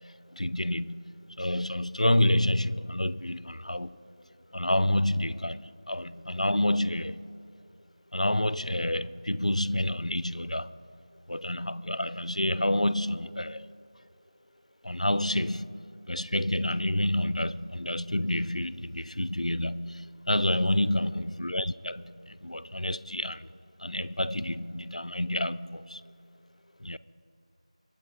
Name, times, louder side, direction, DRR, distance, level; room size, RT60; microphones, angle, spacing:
voice 1, 0.3-1.0 1.4-4.0 4.5-5.6 5.9-7.2 8.1-10.7 11.3-13.6 14.8-15.7 16.1-22.1 22.4-23.5 23.8-26.0 26.8-27.0, left 1 dB, 80° left, 0.5 m, -28 dB
voice 2, 4.1-4.4 5.6-6.2 20.6-21.0, equal, 50° left, 3.9 m, -60 dB
23.5 x 9.1 x 3.8 m
figure-of-eight pair, 170°, 4 cm